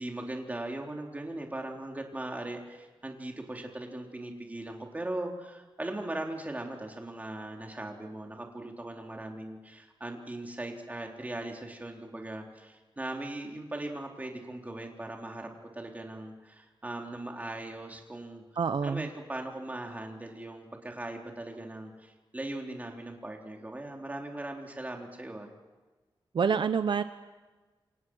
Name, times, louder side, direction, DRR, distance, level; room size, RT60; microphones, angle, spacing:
voice 1, 0.0-18.4 18.8-25.5, right 1 dB, 20° right, 1 dB, 3.8 m, -39 dB
voice 2, 18.6-19.1 26.3-27.0, right 6 dB, 65° right, 10 dB, 0.8 m, -27 dB
28.5 x 26.5 x 6.3 m, 1.3 s
wide cardioid pair, 145°, 9 cm